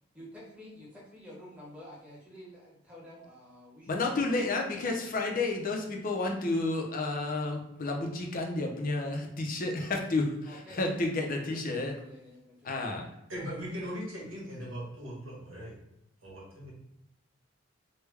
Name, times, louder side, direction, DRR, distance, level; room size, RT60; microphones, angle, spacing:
voice 1, 0.1-5.2 10.4-12.8 13.3-13.4, equal, 5° right, -6 dB, 1.0 m, -50 dB
voice 2, 3.9-11.9 12.6-13.1, left 2 dB, 45° left, 1 dB, 0.5 m, -31 dB
voice 3, 13.3-15.7 16.2-16.7, equal, 85° right, -4 dB, 1.4 m, -39 dB
3.3 x 2.2 x 3.3 m, 0.83 s
head